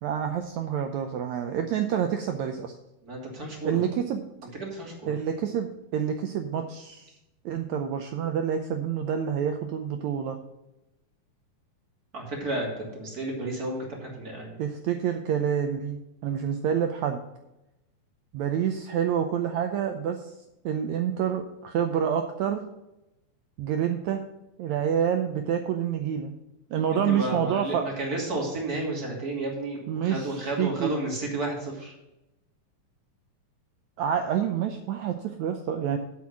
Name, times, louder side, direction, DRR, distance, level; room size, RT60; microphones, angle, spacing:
voice 1, 0.0-2.7 3.6-4.3 5.1-7.1 7.4-10.4 14.6-17.2 18.3-20.3 20.6-22.7 23.6-24.3 24.6-26.4 26.7-27.9 29.9-30.9 34.0-36.0, right 8 dB, 80° right, 6 dB, 1.7 m, -28 dB
voice 2, 3.0-3.9 4.6-4.9 12.1-14.6 27.0-31.9, right 2 dB, 25° right, -2 dB, 3.0 m, -32 dB
8.2 x 6.2 x 7.2 m, 0.93 s
omnidirectional pair, 4.0 m